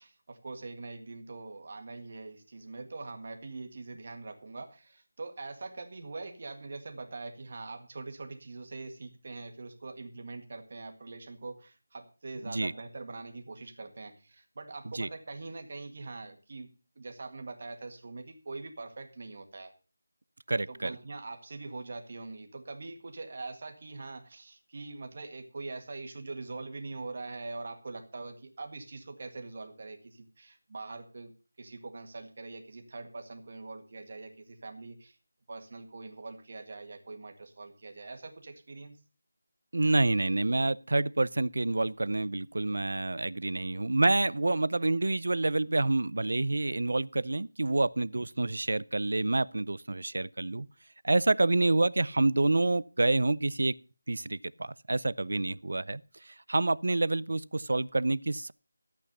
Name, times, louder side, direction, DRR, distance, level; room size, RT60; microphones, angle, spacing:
voice 1, 0.0-16.7 16.9-19.7 20.7-31.3 31.6-35.2 35.5-39.0, right 3 dB, 35° right, 1.8 m, -43 dB
voice 2, 20.5-20.9 39.7-50.7 51.0-53.7 54.1-58.5, right 2 dB, 60° right, 0.5 m, -28 dB
14.0 x 8.4 x 5.5 m
figure-of-eight pair, 180°, 0 cm